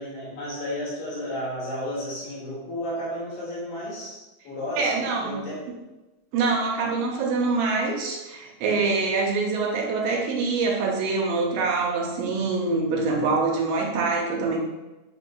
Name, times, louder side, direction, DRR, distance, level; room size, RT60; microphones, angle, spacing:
voice 1, 0.0-5.6 8.7-8.9, equal, 65° left, -8 dB, 2.7 m, -33 dB
voice 2, 4.7-5.5 6.3-14.6, right 4 dB, 80° right, 0 dB, 1.4 m, -25 dB
6.3 x 3.2 x 2.3 m, 1.1 s
omnidirectional pair, 3.5 m